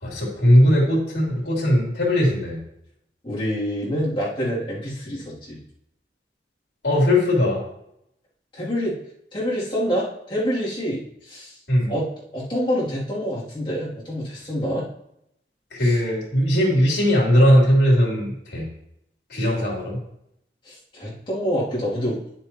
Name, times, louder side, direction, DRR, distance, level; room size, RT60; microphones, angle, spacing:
voice 1, 0.0-2.6 6.8-7.6 11.7-11.9 15.7-18.7 19.3-20.0, equal, 70° left, -3 dB, 3.2 m, -19 dB
voice 2, 3.2-5.6 8.5-9.0 9.3-11.5 11.9-12.0 12.3-14.9 15.8-15.9 20.6-22.2, equal, 30° left, -8 dB, 2.7 m, -26 dB
9.8 x 7.1 x 3.0 m, 0.77 s
head